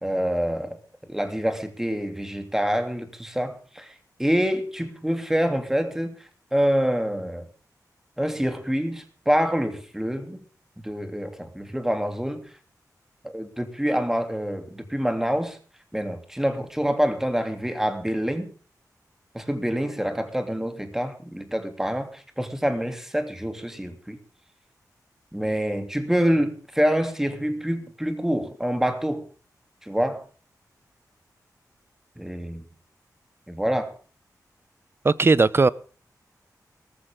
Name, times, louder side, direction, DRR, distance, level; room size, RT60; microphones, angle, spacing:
voice 1, 0.0-0.8 1.1-3.9 4.2-6.2 6.5-7.5 8.2-10.4 10.8-12.4 13.2-15.6 15.9-18.5 19.3-24.2 25.3-29.2 29.8-30.2 32.2-32.6 33.5-33.9, equal, 5° right, 3.0 m, -26 dB
voice 2, 35.0-35.7, right 3 dB, 35° right, 0.7 m, -17 dB
18.5 x 14.5 x 3.7 m
wide cardioid pair, 105°, 7 cm